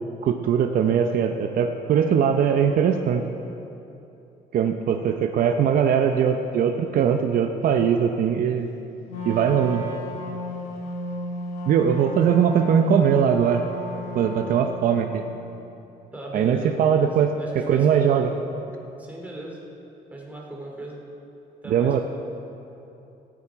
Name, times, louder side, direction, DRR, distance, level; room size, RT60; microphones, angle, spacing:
voice 1, 0.0-3.2 4.5-8.7 9.2-9.9 11.7-13.7 14.1-15.2 16.3-17.3 17.7-18.3 21.7-22.0, right 8 dB, 55° right, 5 dB, 0.7 m, -21 dB
Wind instrument woodwind instrument, 9.1-15.0, left 1 dB, 85° left, 2.0 m, -34 dB
voice 2, 16.1-18.4 19.0-19.6 20.1-21.0 21.6-22.0, right 1 dB, 10° right, -2 dB, 2.6 m, -38 dB
16.0 x 8.9 x 4.7 m, 2.8 s
cardioid pair, 110°, 17 cm